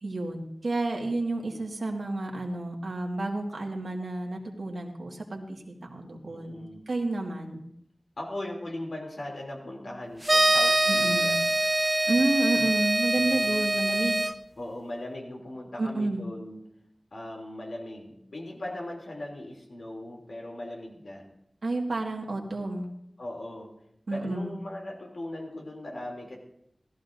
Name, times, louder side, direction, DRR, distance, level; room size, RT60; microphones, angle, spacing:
voice 1, 0.0-6.6 6.9-7.6 10.9-11.4 12.1-14.2 15.8-16.3 21.6-22.9 24.1-24.6, right 2 dB, 85° right, 0 dB, 1.8 m, -30 dB
voice 2, 6.3-6.9 8.2-11.4 13.2-13.6 14.6-16.6 17.1-21.2 23.2-23.7 24.1-26.4, left 1 dB, 80° left, -1 dB, 2.9 m, -39 dB
sound 1, 10.2-14.3, right 1 dB, 20° right, 0.5 m, -24 dB
17.5 x 14.0 x 2.6 m, 0.75 s
wide cardioid pair, 75°, 0 cm